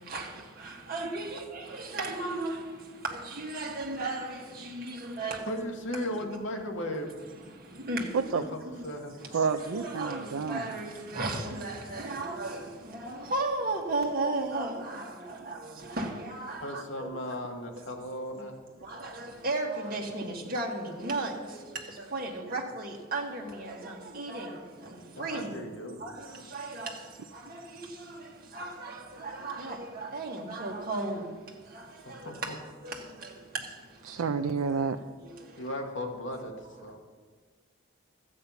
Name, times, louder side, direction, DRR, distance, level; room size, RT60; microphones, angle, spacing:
voice 1, 0.9-2.6 3.4-5.4 7.9-8.3 9.7-12.6 12.9-15.1 15.5-15.6 16.0-17.1 18.9-21.6 22.1-24.5 25.2-25.5 26.0-26.1 26.5-26.9 28.5-28.9 29.2-31.2 32.8-32.9, right 2 dB, 45° right, 1.6 m, -34 dB
voice 2, 5.5-7.1 8.3-9.5 16.6-18.5 25.2-26.0 32.0-32.6 35.6-36.5 36.8-37.0, left 1 dB, 65° left, 1.6 m, -36 dB
voice 3, 9.3-10.6 34.1-35.0, right 5 dB, 90° right, 0.4 m, -29 dB
13.0 x 8.6 x 5.7 m
head